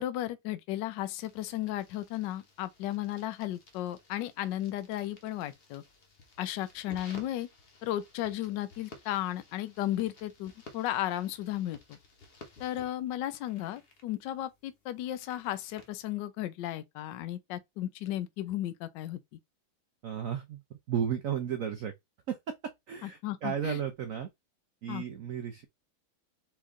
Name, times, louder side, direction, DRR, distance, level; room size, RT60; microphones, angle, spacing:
voice 1, 0.0-5.8 6.4-7.5 7.8-12.0 12.6-19.2 23.0-23.8 24.9-25.0, left 13 dB, 70° left, 1.2 m, -34 dB
sound 1, 1.2-15.9, left 3 dB, 45° left, 0.8 m, -55 dB
voice 2, 20.0-21.9 22.3-22.5 22.9-24.3 24.8-25.7, right 8 dB, 80° right, 0.7 m, -34 dB
4.5 x 3.0 x 3.6 m
omnidirectional pair, 2.2 m